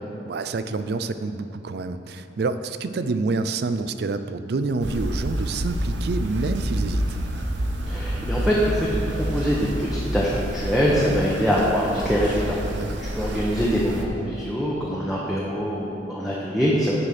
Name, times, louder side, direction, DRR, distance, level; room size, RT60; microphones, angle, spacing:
voice 1, 0.2-7.2 10.9-11.2 12.7-13.0, right 3 dB, 60° right, 11 dB, 0.4 m, -28 dB
sound 1, 4.8-14.1, right 1 dB, 75° right, 0.8 m, -28 dB
voice 2, 7.9-17.0, equal, ahead, -6 dB, 0.8 m, -24 dB
9.7 x 5.0 x 5.8 m, 2.8 s
head